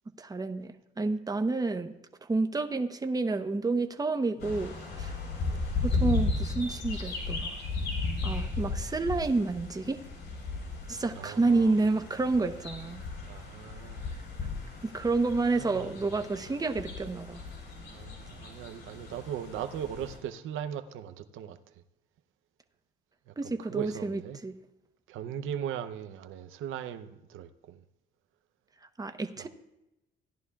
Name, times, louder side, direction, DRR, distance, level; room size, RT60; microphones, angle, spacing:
voice 1, 0.2-1.9 2.2-5.1 5.8-7.6 8.2-10.0 10.9-13.0 14.8-17.4 23.4-24.5 29.0-29.5, right 3 dB, 20° right, 0.9 m, -29 dB
sound 1, 4.4-20.2, left 3 dB, 60° left, 4.3 m, -35 dB
voice 2, 11.1-11.9 13.3-14.1 15.6-16.4 17.9-21.8 23.3-24.4 25.1-27.8 29.4-29.5, right 9 dB, 90° right, 0.7 m, -39 dB
16.5 x 11.0 x 2.3 m
cardioid pair, 90°, 20 cm